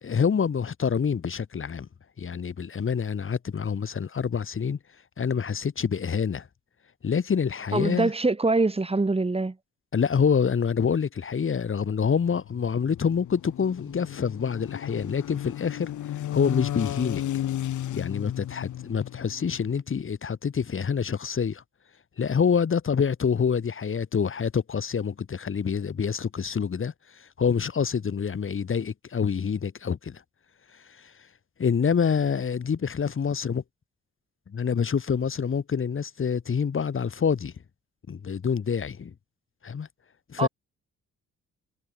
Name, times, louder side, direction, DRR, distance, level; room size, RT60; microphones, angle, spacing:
voice 1, 0.0-1.9 2.2-4.8 5.2-6.5 7.0-8.1 9.9-15.9 16.3-17.2 17.9-21.6 22.2-30.2 30.7-31.1 31.6-33.6 34.5-37.5 38.1-39.1 39.6-39.9 40.3-40.5, left 6 dB, 45° left, 4.0 m, -26 dB
voice 2, 7.7-9.6 40.4-40.5, right 3 dB, 20° right, 4.2 m, -24 dB
sound 1, 12.2-19.8, left 12 dB, 75° left, 7.3 m, -34 dB
cardioid pair, 90°, 30 cm